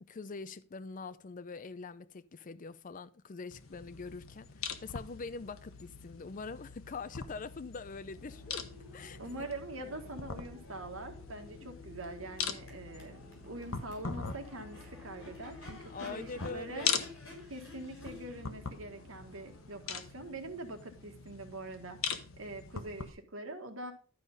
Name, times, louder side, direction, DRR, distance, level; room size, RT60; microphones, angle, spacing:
voice 1, 0.0-8.7 8.9-9.2 11.6-11.7 15.9-17.1, left 4 dB, 40° left, 0.5 m, -44 dB
sound 1, 3.5-23.1, left 6 dB, 85° left, 1.1 m, -42 dB
Crowd / Race car auto racing / Accelerating revving vroom, 8.1-21.9, left 2 dB, 65° left, 4.5 m, -53 dB
voice 2, 9.2-16.9 17.5-22.0 22.4-23.9, right 2 dB, 75° right, 1.8 m, -44 dB
12.0 x 5.0 x 5.4 m
head